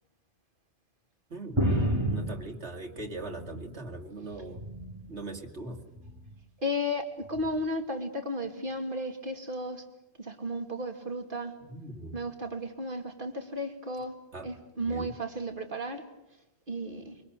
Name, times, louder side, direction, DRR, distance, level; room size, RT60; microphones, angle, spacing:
voice 1, 1.3-1.7 2.1-4.6 5.1-5.8 11.7-12.2 14.3-14.5 14.9-15.1, right 2 dB, 75° right, 2.7 m, -40 dB
sound 1, 1.6-3.8 4.2-5.1 6.0-6.3 7.3-7.5, equal, 25° right, 3.5 m, -31 dB
voice 2, 6.6-9.9 10.2-11.5 12.1-14.1 14.4-16.1 16.7-17.2, equal, 50° right, 2.8 m, -34 dB
25.0 x 24.0 x 8.3 m
omnidirectional pair, 1.1 m